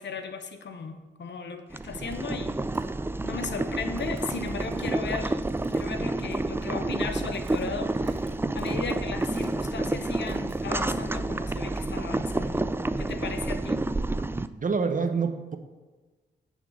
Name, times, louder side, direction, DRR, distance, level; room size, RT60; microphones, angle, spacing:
voice 1, 0.0-2.6 3.2-5.4 5.7-8.2 8.5-12.7 13.0-13.8, left 5 dB, 70° left, 8 dB, 0.8 m, -36 dB
sound 1, 1.2-1.3 1.7-2.2 2.4-2.9 3.5-6.1 6.3-6.7 7.0-10.6, right 5 dB, 75° right, 2.1 m, -56 dB
Boiling, 1.7-14.5, right 2 dB, 10° right, 0.3 m, -29 dB
voice 2, 14.5-15.6, right 5 dB, 45° right, 8 dB, 0.8 m, -27 dB
8.4 x 3.6 x 6.1 m, 1.3 s
supercardioid pair, 45°, 19 cm